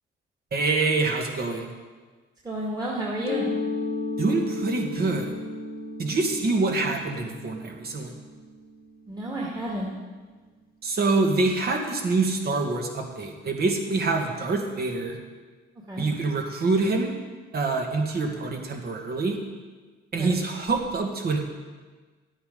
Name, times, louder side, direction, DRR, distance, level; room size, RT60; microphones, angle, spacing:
voice 1, 0.5-1.7 4.2-5.3 6.0-8.2 10.8-15.2 16.0-17.1 17.5-19.4 20.1-21.4, right 3 dB, 50° right, 2 dB, 2.0 m, -25 dB
voice 2, 2.4-3.5 9.1-9.9 15.9-16.1 20.1-20.3, right 1 dB, 20° right, -4 dB, 2.2 m, -31 dB
Mallet percussion, 3.2-8.8, left 3 dB, 50° left, 1.2 m, -33 dB
11.5 x 8.7 x 5.4 m, 1.4 s
cardioid pair, 90°, 20 cm